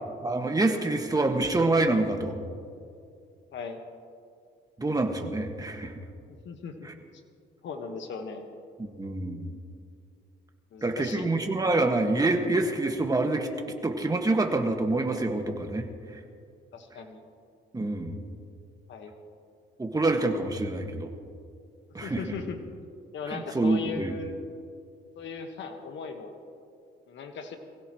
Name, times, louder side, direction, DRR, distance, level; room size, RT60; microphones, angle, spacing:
voice 1, 0.2-2.4 4.8-5.9 6.8-6.9 8.8-9.5 10.8-13.5 13.8-16.2 17.7-18.2 19.8-21.1 21.9-22.4 23.3-24.1, right 2 dB, 20° right, 3 dB, 1.8 m, -26 dB
voice 2, 6.5-6.9 7.6-8.5 10.7-11.3 16.7-17.2 18.9-19.1 22.0-22.6 23.1-24.4 25.2-26.3 27.1-27.6, left 5 dB, 70° left, 5 dB, 1.6 m, -37 dB
24.0 x 16.5 x 3.2 m, 2.3 s
cardioid pair, 90°, 20 cm